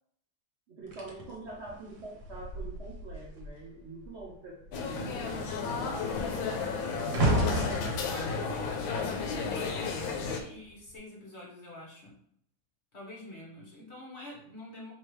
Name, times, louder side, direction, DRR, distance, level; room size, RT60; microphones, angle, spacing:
voice 1, 0.7-6.6, right 2 dB, 80° right, -3 dB, 0.6 m, -45 dB
sound 1, 0.9-3.6 3.9-4.3 4.6-9.9 10.7-10.9, right 1 dB, 65° right, 1.5 m, -33 dB
sound 2, 4.7-10.4, left 5 dB, 75° left, 1.3 m, -33 dB
voice 2, 7.5-12.2 12.9-14.9, left 2 dB, 40° left, -3 dB, 1.1 m, -46 dB
4.6 x 3.5 x 3.1 m, 0.68 s
omnidirectional pair, 2.4 m